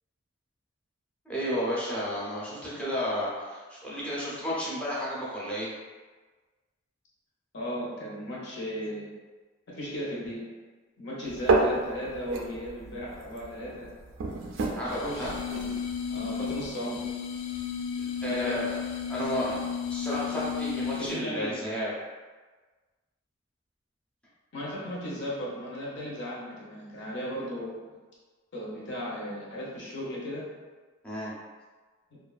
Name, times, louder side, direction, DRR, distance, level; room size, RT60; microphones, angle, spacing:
voice 1, 1.3-5.7 14.7-15.3 18.0-18.8 19.1-19.6 19.9-21.9 31.0-31.3, equal, 5° left, -7 dB, 0.6 m, -32 dB
voice 2, 7.5-9.1 9.7-10.4 11.0-13.9 14.6-15.3 15.6-15.7 16.1-17.0 18.3-18.6 19.1-19.3 20.3-20.4 21.0-21.6 24.5-27.8 28.5-30.5, equal, 60° left, -5 dB, 0.8 m, -36 dB
sound 1, 11.3-16.7, right 3 dB, 65° right, 0.3 m, -31 dB
sound 2, 14.9-21.4, left 7 dB, 80° left, 0.3 m, -34 dB
2.5 x 2.3 x 2.4 m, 1.3 s
head